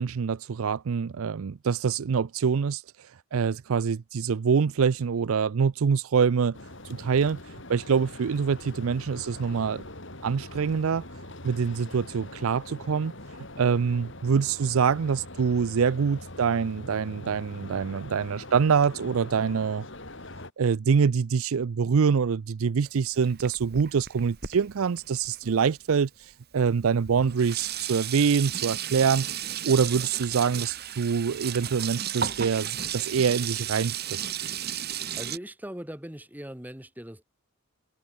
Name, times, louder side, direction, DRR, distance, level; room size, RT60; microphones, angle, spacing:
voice 1, 0.0-2.8 3.3-6.6 6.9-7.4 7.7-9.8 10.2-11.0 11.4-13.1 13.6-19.8 20.6-26.1 26.5-29.3 29.6-34.2, right 6 dB, 70° right, 0.4 m, -25 dB
sound 1, 6.5-20.5, left 2 dB, 55° left, 5.1 m, -43 dB
Sink (filling or washing), 22.8-26.0 26.7-26.8 27.1-35.4, right 9 dB, 45° right, 1.8 m, -34 dB
voice 2, 35.1-37.2, equal, 10° right, 1.2 m, -40 dB
head